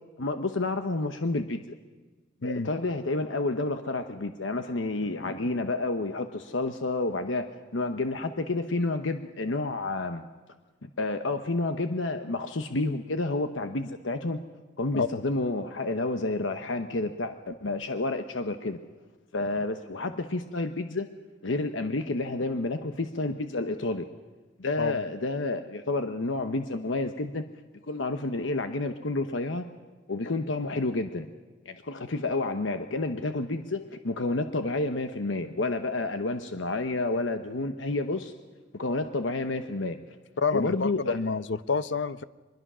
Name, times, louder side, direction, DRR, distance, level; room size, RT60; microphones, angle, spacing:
voice 1, 0.2-1.8 2.4-7.5 7.7-10.2 10.8-14.4 14.8-18.8 19.3-21.1 21.4-24.1 24.6-27.4 27.9-29.7 30.1-31.3 31.6-38.3 38.7-40.0 40.5-41.2, left 2 dB, 85° left, 7 dB, 1.0 m, -30 dB
voice 2, 40.4-42.2, left 4 dB, 70° left, 14 dB, 0.7 m, -28 dB
23.5 x 21.5 x 6.2 m, 1.3 s
head